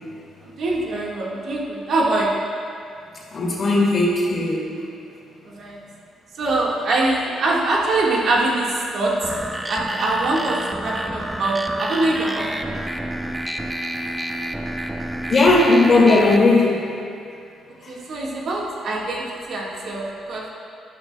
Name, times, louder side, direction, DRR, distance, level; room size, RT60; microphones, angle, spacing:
voice 1, 0.4-2.5 5.4-5.8 6.3-9.4 9.7-12.7 17.9-20.5, right 2 dB, 60° right, -3 dB, 1.6 m, -23 dB
voice 2, 3.3-4.7 15.3-16.9, left 2 dB, 45° left, -3 dB, 2.2 m, -17 dB
sound 1, 9.2-16.4, right 1 dB, 10° right, 0.5 m, -29 dB
11.5 x 10.5 x 2.3 m, 2.4 s
cardioid pair, 90°, 0 cm